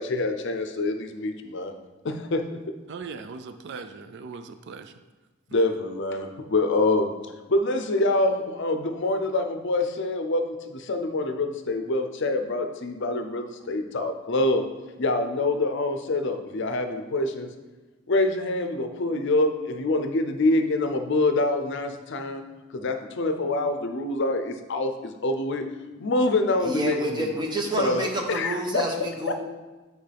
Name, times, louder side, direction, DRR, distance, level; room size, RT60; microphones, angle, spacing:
voice 1, 0.0-1.7 2.0-2.4 5.5-7.1 7.5-14.6 15.0-17.5 18.1-22.4 22.7-25.6 26.0-27.3 27.8-28.8 29.3-29.4, left 2 dB, 60° left, 7 dB, 0.6 m, -25 dB
voice 2, 2.9-4.9, right 4 dB, 55° right, 9 dB, 0.4 m, -39 dB
voice 3, 26.6-29.3, right 1 dB, 20° right, 1 dB, 1.0 m, -28 dB
9.0 x 4.5 x 3.4 m, 1.2 s
head